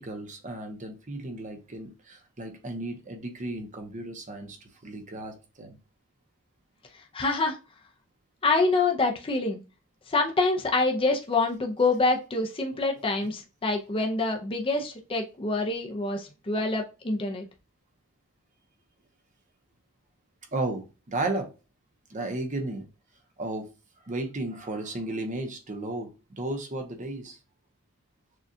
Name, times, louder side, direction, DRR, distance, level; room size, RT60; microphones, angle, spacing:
voice 1, 0.0-4.6 4.8-5.8 16.6-16.7 20.5-21.5 22.1-22.8 23.4-23.6 24.1-26.1 26.4-27.4, right 2 dB, 35° right, 5 dB, 0.8 m, -34 dB
voice 2, 7.1-7.6 8.4-9.6 10.1-17.5, left 3 dB, 25° left, 2 dB, 0.6 m, -26 dB
6.4 x 2.4 x 2.7 m, 0.30 s
head